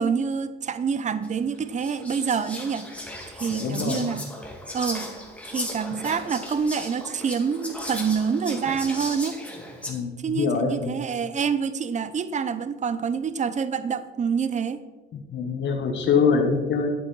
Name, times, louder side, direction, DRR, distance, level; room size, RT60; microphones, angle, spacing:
voice 1, 0.0-2.9 3.4-4.2 4.7-5.1 5.4-9.4 10.2-14.8, right 6 dB, 35° right, 13 dB, 0.7 m, -27 dB
Whispering, 1.2-1.3 1.8-9.9, left 1 dB, 5° left, 2.4 m, -36 dB
voice 2, 3.5-4.1 9.9-11.0 15.1-16.9, left 5 dB, 65° left, 3 dB, 1.2 m, -24 dB
11.0 x 8.2 x 4.0 m, 1.2 s
cardioid pair, 90°, 20 cm